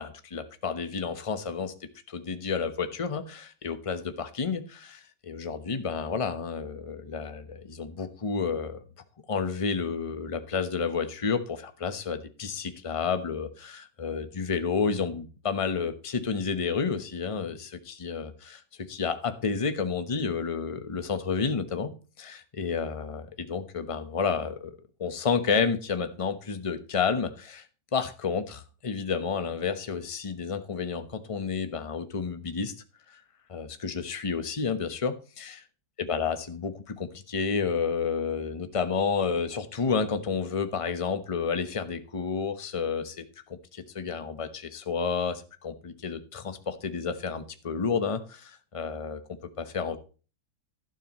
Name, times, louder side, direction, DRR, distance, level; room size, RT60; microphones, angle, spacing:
voice 1, 0.0-1.7 2.1-8.8 9.3-18.6 18.9-21.9 22.2-27.6 27.9-32.7 33.5-35.6 36.0-49.2 49.6-50.0, left 5 dB, 25° left, 9 dB, 0.9 m, -30 dB
12.0 x 11.5 x 3.1 m, 0.35 s
omnidirectional pair, 1.8 m